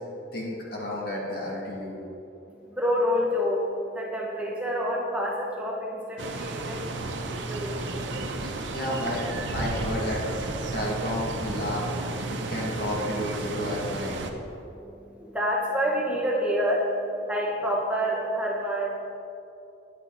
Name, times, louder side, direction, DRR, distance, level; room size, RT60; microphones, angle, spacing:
voice 1, 0.3-2.0 8.4-9.3 9.5-10.2 10.7-11.9 12.3-14.2, left 1 dB, 55° left, -4 dB, 2.1 m, -31 dB
voice 2, 2.5-8.7 14.4-19.1, equal, 5° right, -3 dB, 0.9 m, -29 dB
sound 1, 6.2-14.3, right 2 dB, 80° right, 0.8 m, -33 dB
9.8 x 8.2 x 4.0 m, 2.9 s
head